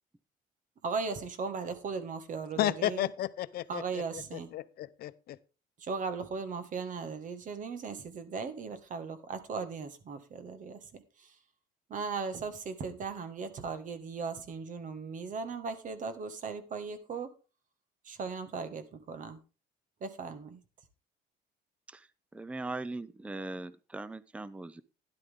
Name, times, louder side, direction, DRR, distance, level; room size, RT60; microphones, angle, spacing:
voice 1, 0.8-3.1 3.7-4.5 5.8-11.4 11.9-17.3 18.0-19.4 20.0-20.6, right 5 dB, 50° right, 1.8 m, -37 dB
voice 2, 2.6-3.8 4.5-5.4, left 13 dB, 65° left, 0.7 m, -32 dB
voice 3, 22.3-24.8, right 2 dB, 5° right, 0.5 m, -39 dB
12.0 x 10.5 x 3.7 m
cardioid pair, 110°, 17 cm